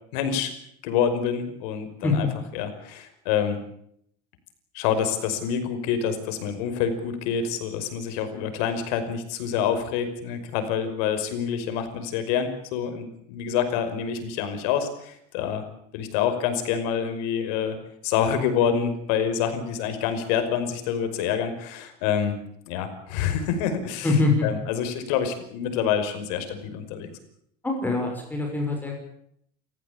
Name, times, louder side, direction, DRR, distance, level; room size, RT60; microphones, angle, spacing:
voice 1, 0.1-0.5 0.8-2.3 2.5-3.6 4.7-15.6 15.9-17.8 18.0-22.4 22.7-24.1 24.4-27.1, left 8 dB, 75° left, 8 dB, 5.4 m, -27 dB
voice 2, 24.0-24.5 27.6-29.0, left 3 dB, 10° left, 2 dB, 5.9 m, -23 dB
29.0 x 15.5 x 8.7 m, 0.72 s
cardioid pair, 155°, 20 cm